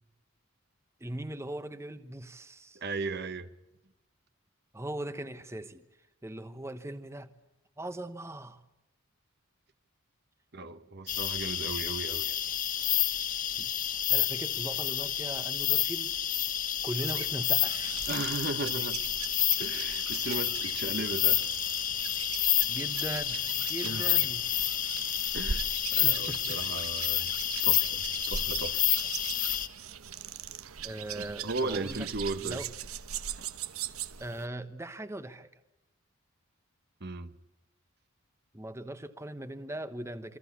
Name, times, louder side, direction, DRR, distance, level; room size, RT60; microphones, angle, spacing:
voice 1, 1.0-2.8 4.7-5.8 6.2-7.3 7.8-8.6 13.6-13.7 14.1-16.1 16.8-18.0 22.7-24.4 26.0-26.6 27.1-27.3 30.8-32.1 32.4-32.7 34.2-35.5 38.5-40.4, right 1 dB, 15° right, 1.1 m, -39 dB
voice 2, 2.7-3.5 10.5-12.4 18.1-19.0 19.6-21.4 23.8-24.1 25.3-27.3 27.6-28.9 31.2-32.6 33.4-33.5 37.0-37.3, right 3 dB, 50° right, 1.2 m, -36 dB
sound 1, 11.1-29.7, left 11 dB, 40° left, 1.3 m, -29 dB
sound 2, 16.9-34.5, right 8 dB, 90° right, 1.1 m, -41 dB
28.5 x 23.5 x 8.5 m
head